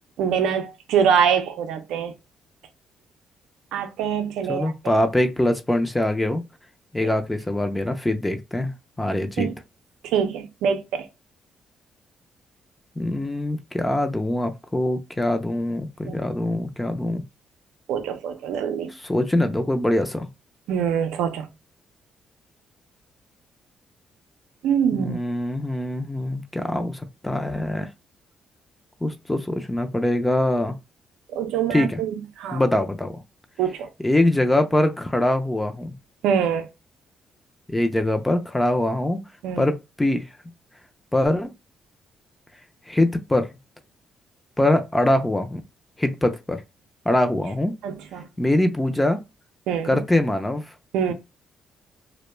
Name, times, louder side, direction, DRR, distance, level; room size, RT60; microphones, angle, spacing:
voice 1, 0.2-2.1 3.7-4.7 9.4-9.5 10.0-11.1 16.1-16.2 17.9-18.9 20.7-21.5 24.6-25.2 31.3-32.6 33.6-33.9 36.2-36.7 39.4-39.7 47.8-48.3 49.7-50.0 50.9-51.1, right 7 dB, 90° right, 0.4 m, -24 dB
voice 2, 4.5-6.4 6.9-8.7 9.0-9.5 13.0-17.2 18.9-20.3 24.9-27.9 29.0-30.8 31.7-32.0 32.5-33.1 34.0-36.0 37.7-39.2 39.6-40.3 41.1-41.5 42.9-43.5 44.6-45.6 46.0-46.6 47.1-47.7 48.4-49.2 49.8-50.7, left 1 dB, 10° left, 0.4 m, -23 dB
2.1 x 2.1 x 3.1 m
cardioid pair, 90°, 0 cm